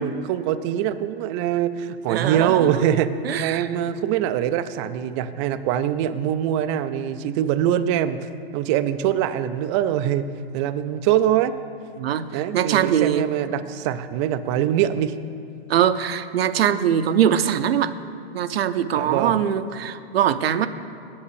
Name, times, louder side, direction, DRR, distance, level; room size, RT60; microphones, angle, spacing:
voice 1, 0.0-10.3 10.5-11.5 12.3-15.1 18.9-19.4, right 10 dB, 30° right, 11 dB, 0.4 m, -23 dB
voice 2, 2.1-2.8 3.2-3.7 12.0-13.3 15.7-17.9 18.3-20.7, right 9 dB, 70° right, 12 dB, 0.7 m, -22 dB
8.6 x 8.0 x 8.2 m, 2.5 s
hypercardioid pair, 125°, 31 cm